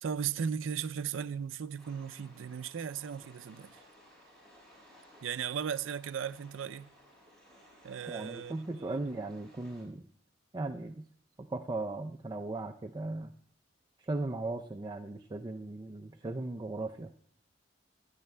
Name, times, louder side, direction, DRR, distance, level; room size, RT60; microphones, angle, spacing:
voice 1, 0.0-3.8 5.2-6.9 7.8-8.5 8.8-9.1, right 7 dB, 85° right, 0.4 m, -36 dB
sound 1, 1.8-9.8, equal, 5° left, 6.2 m, -59 dB
voice 2, 8.1-10.1 10.5-11.0 11.5-13.3 14.0-17.1, right 2 dB, 25° right, 0.4 m, -37 dB
27.0 x 10.5 x 2.2 m
head